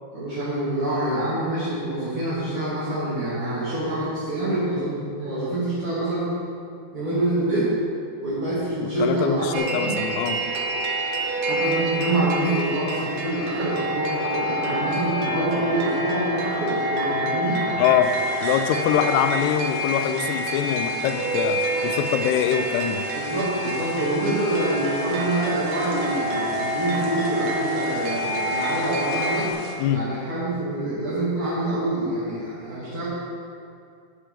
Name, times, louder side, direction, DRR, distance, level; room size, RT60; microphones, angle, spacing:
voice 1, 0.1-6.3 6.9-7.7 8.2-9.9 11.4-17.6 18.9-19.0 23.1-29.5 29.9-33.0, right 1 dB, 35° right, -12 dB, 3.3 m, -26 dB
voice 2, 8.8-10.5 17.8-23.1 29.8-30.1, left 9 dB, 85° left, 9 dB, 2.7 m, -24 dB
sound 1, 9.5-29.5, right 1 dB, 70° right, 2.2 m, -27 dB
sound 2, 18.0-29.8, left 3 dB, 65° left, 2.0 m, -41 dB
13.5 x 7.5 x 5.0 m, 2.4 s
omnidirectional pair, 4.7 m